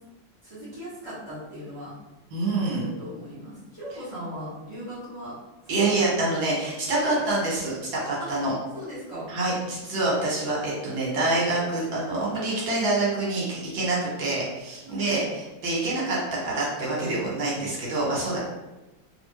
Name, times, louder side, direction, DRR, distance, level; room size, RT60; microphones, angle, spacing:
voice 1, 0.4-1.9 2.7-5.3 5.7-6.4 7.0-7.2 8.2-8.3 8.7-9.3 14.8-15.2, equal, 20° right, -15 dB, 1.0 m, -38 dB
voice 2, 2.3-2.8 5.7-7.7 8.0-8.5 9.3-18.4, right 2 dB, 75° right, -5 dB, 1.8 m, -26 dB
3.0 x 2.8 x 3.2 m, 1.1 s
omnidirectional pair, 2.1 m